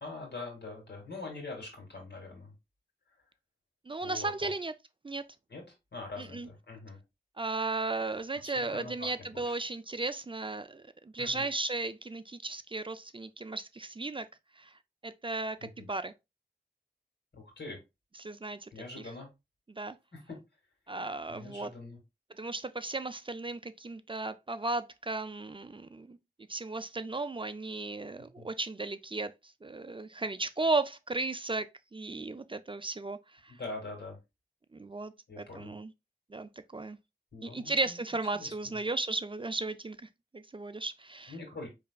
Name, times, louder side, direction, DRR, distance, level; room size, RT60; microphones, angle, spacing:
voice 1, 0.0-2.6 4.0-4.5 5.5-7.0 8.4-9.6 11.2-11.5 15.6-15.9 17.3-17.8 18.7-19.3 20.1-20.4 21.3-22.0 28.2-28.5 33.5-34.2 35.3-35.7 37.3-38.0 38.3-38.8 41.3-41.7, left 3 dB, 80° left, 2.0 m, -44 dB
voice 2, 3.9-4.7 5.0-5.2 6.2-6.5 7.4-14.3 14.6-16.1 18.2-18.7 19.7-20.0 20.9-21.7 22.4-26.2 26.5-33.6 34.7-35.9 36.3-37.0 37.4-41.3, right 3 dB, 30° right, 0.3 m, -35 dB
4.8 x 3.2 x 2.2 m
wide cardioid pair, 70°, 17 cm